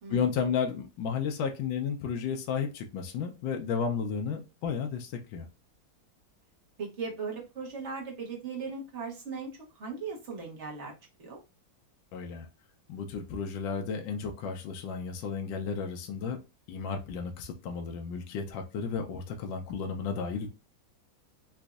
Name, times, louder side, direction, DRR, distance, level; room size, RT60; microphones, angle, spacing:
voice 1, 0.1-5.5 12.1-12.5 12.9-16.4 16.7-20.5, left 6 dB, 75° left, 3 dB, 1.3 m, -33 dB
voice 2, 6.8-10.9 11.2-11.4, right 5 dB, 45° right, -1 dB, 1.1 m, -38 dB
4.0 x 2.5 x 2.3 m, 0.27 s
omnidirectional pair, 2.1 m